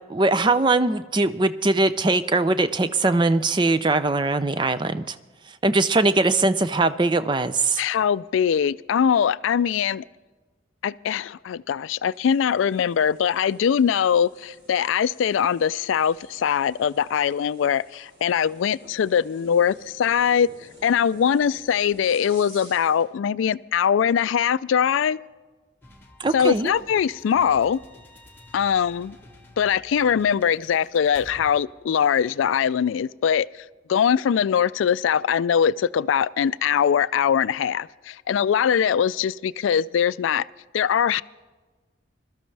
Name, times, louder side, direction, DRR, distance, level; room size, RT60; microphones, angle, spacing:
voice 1, 0.1-5.2 5.6-7.8 26.2-26.7, right 2 dB, 25° right, 0.5 m, -21 dB
voice 2, 7.8-10.0 10.8-20.5 20.8-25.2 26.3-27.8 28.5-29.2 29.6-33.5 33.9-40.5 40.7-41.2, left 8 dB, 85° left, 0.3 m, -22 dB
sound 1, 12.1-23.1, right 1 dB, 55° right, 3.8 m, -52 dB
sound 2, 25.8-31.5, left 1 dB, 10° left, 1.4 m, -50 dB
21.5 x 13.0 x 3.3 m
head